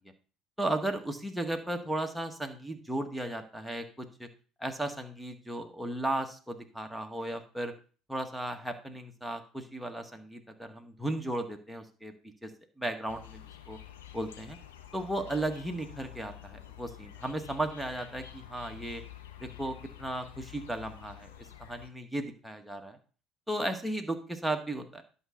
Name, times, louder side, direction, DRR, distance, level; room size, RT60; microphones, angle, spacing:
voice 1, 0.6-4.3 4.6-7.7 8.1-12.1 12.4-12.5 12.8-13.8 14.1-14.6 14.9-19.0 19.4-21.3 21.6-23.0 23.5-25.0, right 1 dB, ahead, 3 dB, 1.7 m, -35 dB
sound 1, 13.1-21.9, left 12 dB, 85° left, 1.0 m, -49 dB
11.0 x 5.6 x 3.9 m, 0.38 s
hypercardioid pair, 65°, 0 cm